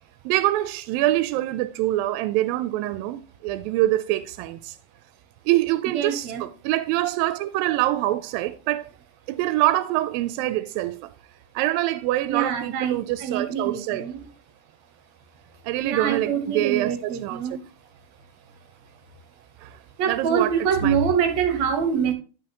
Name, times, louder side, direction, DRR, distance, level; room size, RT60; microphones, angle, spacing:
voice 1, 0.3-4.8 5.5-8.9 9.3-11.1 11.6-14.1 15.6-17.4 19.6-19.8 20.1-21.0, right 15 dB, 85° right, 2.3 m, -25 dB
voice 2, 5.9-6.4 12.3-14.2 15.8-17.6 20.0-22.1, right 7 dB, 65° right, 2.0 m, -25 dB
10.5 x 5.3 x 2.9 m
omnidirectional pair, 4.0 m